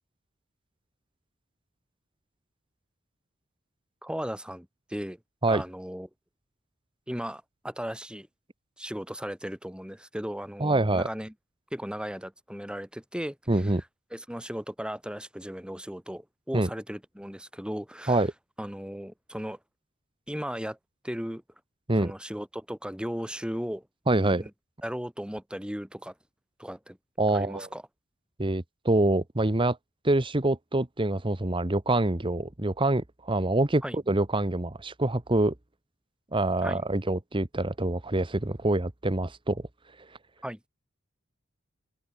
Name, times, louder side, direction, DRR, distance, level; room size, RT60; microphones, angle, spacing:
voice 1, 4.0-5.2 5.5-6.1 7.1-8.3 8.8-11.3 11.7-13.4 14.1-18.2 18.6-19.6 20.3-20.8 21.0-21.4 22.0-23.9 24.2-24.5 24.8-26.1 26.6-27.0 27.3-27.8 33.8-34.0 36.6-36.8 40.4-40.6, equal, 5° right, 3.5 m, -36 dB
voice 2, 10.6-11.1 13.5-13.8 16.5-16.7 18.1-18.3 21.9-22.1 24.1-24.4 27.2-27.7 28.4-29.8 30.0-35.5 36.3-39.7 40.0-40.1, right 2 dB, 25° right, 1.2 m, -25 dB
open air
head